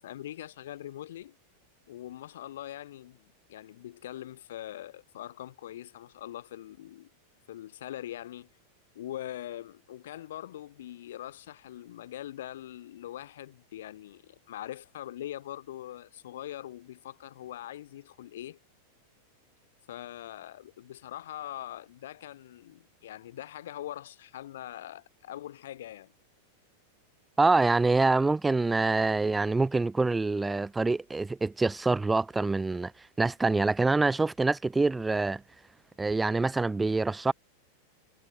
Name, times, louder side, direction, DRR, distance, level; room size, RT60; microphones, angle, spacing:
voice 1, 0.0-1.4 1.9-7.1 7.5-8.5 8.9-18.6 19.9-26.1, left 12 dB, 60° left, 7.5 m, -42 dB
voice 2, 27.4-32.9 33.2-35.4 36.0-37.3, right 3 dB, 10° right, 1.8 m, -25 dB
figure-of-eight pair, 90°, 0 cm